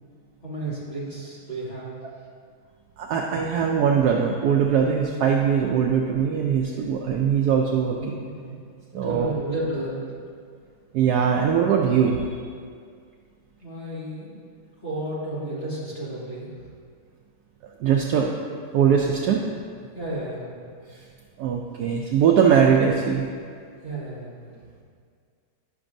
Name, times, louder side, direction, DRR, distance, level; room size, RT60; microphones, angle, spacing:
voice 1, 0.4-1.9 8.0-8.6 9.0-10.1 13.6-14.3 14.8-16.6 19.9-20.5 23.8-24.4, right 1 dB, 30° left, -9 dB, 2.2 m, -32 dB
voice 2, 3.0-8.2 8.9-9.3 10.9-12.3 17.8-18.3 18.7-19.4 21.4-23.3, right 7 dB, 85° right, 0 dB, 0.8 m, -21 dB
11.0 x 6.0 x 2.6 m, 2.1 s
omnidirectional pair, 2.2 m